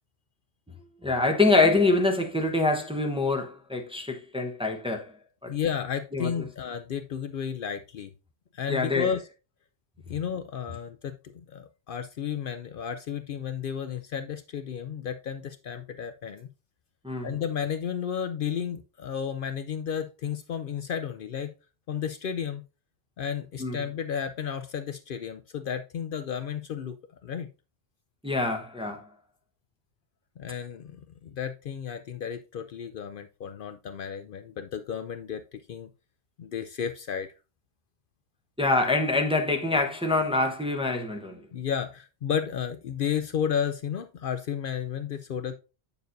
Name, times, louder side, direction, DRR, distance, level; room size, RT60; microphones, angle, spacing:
voice 1, 1.0-5.1 5.4-5.5 6.1-6.3 8.7-9.1 17.0-17.3 23.6-23.8 28.2-29.1 38.6-41.4, left 2 dB, 5° right, 0.8 m, -25 dB
voice 2, 5.5-8.1 8.5-9.2 10.1-16.5 17.2-21.5 21.9-22.6 23.2-27.0 27.2-27.5 30.4-35.9 36.4-37.3 41.5-45.5, left 8 dB, 60° left, 0.7 m, -32 dB
8.0 x 6.9 x 2.6 m
omnidirectional pair, 1.1 m